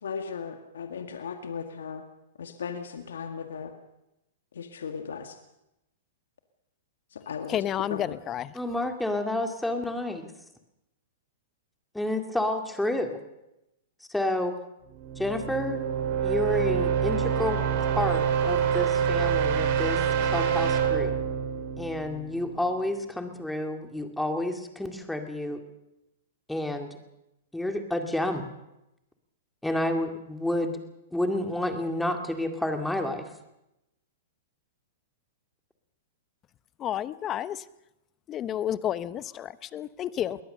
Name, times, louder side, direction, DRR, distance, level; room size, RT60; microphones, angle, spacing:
voice 1, 0.0-2.0 2.4-3.7 4.5-5.4 7.1-7.6 7.9-8.2, left 6 dB, 90° left, 6 dB, 1.9 m, -36 dB
voice 2, 7.5-8.5 36.8-37.6 38.3-40.4, left 11 dB, 25° left, 16 dB, 0.8 m, -31 dB
voice 3, 8.5-10.3 11.9-13.2 14.1-14.6 15.2-15.8 16.2-17.6 18.0-20.0 20.3-21.1 21.8-25.6 26.5-27.0 27.5-28.5 29.6-30.8 31.1-33.3, left 1 dB, 5° left, 5 dB, 2.2 m, -29 dB
sound 1, 14.9-22.8, right 7 dB, 50° right, 3.4 m, -26 dB
22.5 x 18.0 x 6.8 m, 0.89 s
hypercardioid pair, 140°, 0 cm